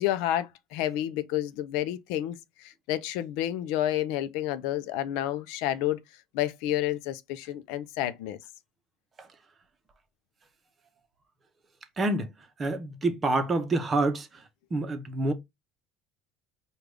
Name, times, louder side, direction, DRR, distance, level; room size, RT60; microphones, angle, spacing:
voice 1, 0.0-6.0 6.3-8.4, left 13 dB, 80° left, 0.5 m, -30 dB
voice 2, 12.0-12.3 12.6-14.3 14.7-15.3, right 2 dB, 25° right, 0.7 m, -27 dB
5.0 x 2.3 x 3.3 m
cardioid pair, 135°, 0 cm